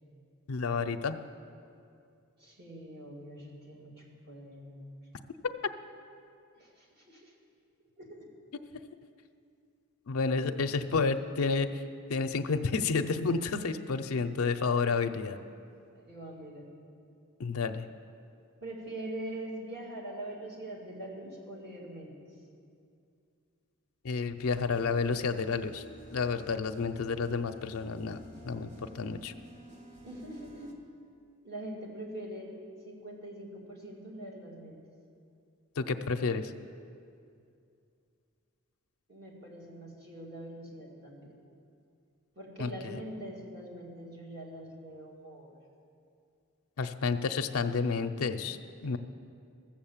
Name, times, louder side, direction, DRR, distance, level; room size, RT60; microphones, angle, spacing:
voice 1, 0.5-1.2 10.1-11.7 12.1-15.4 17.4-17.8 24.0-25.8 26.1-28.2 28.4-29.3 35.8-36.5 42.6-43.0 46.8-49.0, left 4 dB, 70° left, 6 dB, 0.5 m, -30 dB
voice 2, 2.4-4.9 6.5-7.3 8.0-8.2 10.4-10.7 15.9-16.7 18.6-22.1 30.0-30.8 31.4-32.5 32.8-34.8 39.1-41.4 42.4-45.5, right 1 dB, 50° right, -3 dB, 2.5 m, -43 dB
sound 1, 24.4-30.7, right 1 dB, 35° right, 1.3 m, -51 dB
14.5 x 7.3 x 7.3 m, 2.5 s
head